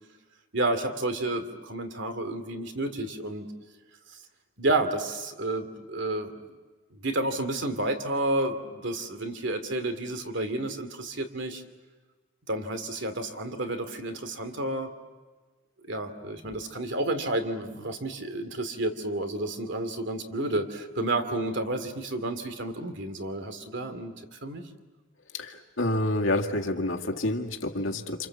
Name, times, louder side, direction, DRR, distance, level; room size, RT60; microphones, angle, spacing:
voice 1, 0.5-3.5 4.6-6.3 6.9-11.6 12.5-14.9 15.8-24.1 24.4-24.6, right 2 dB, 65° right, 8 dB, 2.6 m, -30 dB
voice 2, 25.4-28.3, left 1 dB, 80° left, 3 dB, 2.2 m, -28 dB
28.0 x 28.0 x 7.6 m, 1.3 s
head